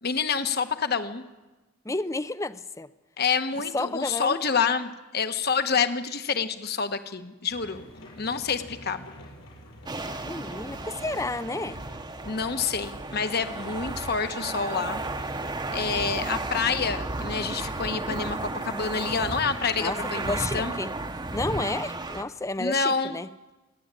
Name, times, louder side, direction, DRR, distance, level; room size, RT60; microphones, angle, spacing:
voice 1, 0.0-1.2 3.2-7.8 8.2-9.0 12.2-15.0 15.7-20.7 22.6-23.2, left 5 dB, 50° left, 1.3 m, -28 dB
voice 2, 1.8-2.9 3.7-4.4 10.2-11.8 19.8-20.0 20.3-20.9 21.3-23.3, left 2 dB, 15° left, 0.6 m, -31 dB
sound 1, 7.5-20.6, left 1 dB, 85° left, 7.9 m, -48 dB
sound 2, 9.9-22.2, right 2 dB, 20° right, 0.9 m, -34 dB
28.5 x 11.0 x 9.1 m
head